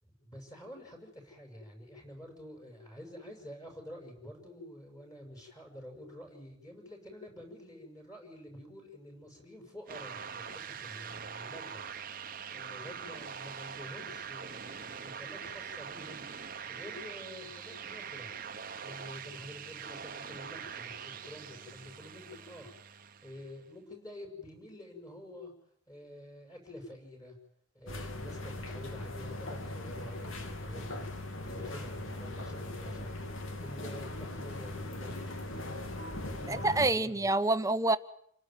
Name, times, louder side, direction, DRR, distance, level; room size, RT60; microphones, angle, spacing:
voice 1, 0.0-12.0 12.5-16.2 16.7-18.3 18.8-22.7 23.2-25.5 25.9-27.4 27.7-31.1 31.4-33.3 33.6-35.4 36.3-37.3, left 1 dB, 20° left, 7.1 m, -48 dB
sound 1, 9.9-23.6, right 7 dB, 45° right, 1.1 m, -43 dB
sound 2, 27.9-36.9, left 1 dB, 85° left, 3.1 m, -40 dB
voice 2, 36.5-38.0, right 2 dB, 15° right, 1.1 m, -27 dB
29.0 x 18.0 x 9.3 m
head